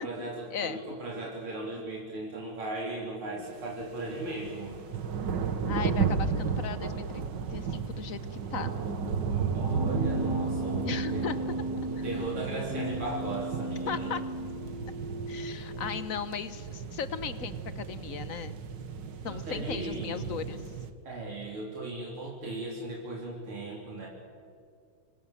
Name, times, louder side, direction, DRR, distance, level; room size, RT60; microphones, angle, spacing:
voice 1, 0.0-4.8 9.3-11.5 11.9-14.1 19.3-20.4 21.0-24.1, right 2 dB, 75° right, -3 dB, 4.5 m, -37 dB
sound 1, 3.5-20.9, right 5 dB, 55° right, 2.0 m, -34 dB
voice 2, 5.7-7.2 7.5-8.7 10.9-11.7 12.0-12.1 13.9-14.2 15.3-18.5 19.2-20.6, left 7 dB, 50° left, 12 dB, 1.2 m, -37 dB
Keyboard (musical), 9.7-15.7, right 1 dB, 30° left, 2.4 m, -36 dB
28.0 x 25.5 x 7.4 m, 2.3 s
omnidirectional pair, 2.4 m